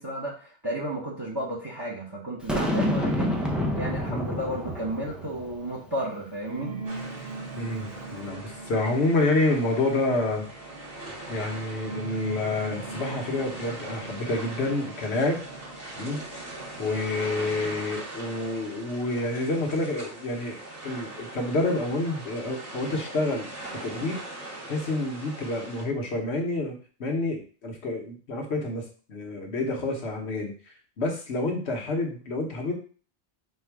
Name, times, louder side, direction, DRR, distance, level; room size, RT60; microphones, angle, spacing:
voice 1, 0.0-6.8, right 1 dB, 25° right, -3 dB, 0.9 m, -33 dB
Boom, 2.5-5.8, left 1 dB, ahead, 0.3 m, -28 dB
sound 1, 6.4-19.7, right 3 dB, 60° right, 0.9 m, -42 dB
sound 2, 6.8-25.8, right 2 dB, 80° right, 2.1 m, -41 dB
voice 2, 7.5-10.4 11.3-15.4 15.9-16.2 16.8-20.6 20.8-23.5 23.8-24.2 24.7-30.5 31.0-32.7, left 2 dB, 65° left, 2 dB, 1.3 m, -28 dB
4.4 x 2.4 x 4.6 m, 0.39 s
omnidirectional pair, 1.2 m